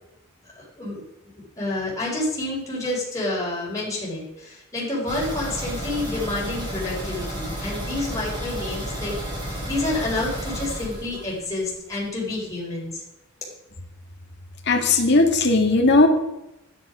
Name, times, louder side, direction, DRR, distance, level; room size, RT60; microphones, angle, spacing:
voice 1, 0.6-1.0 1.6-13.0, left 2 dB, 15° left, -5 dB, 4.7 m, -29 dB
sound 1, 5.1-11.7 12.0-12.1 12.5-12.6, equal, 20° right, 4.2 m, -32 dB
voice 2, 14.7-16.1, left 3 dB, 50° left, 3 dB, 1.9 m, -17 dB
10.5 x 10.0 x 6.2 m, 0.90 s
head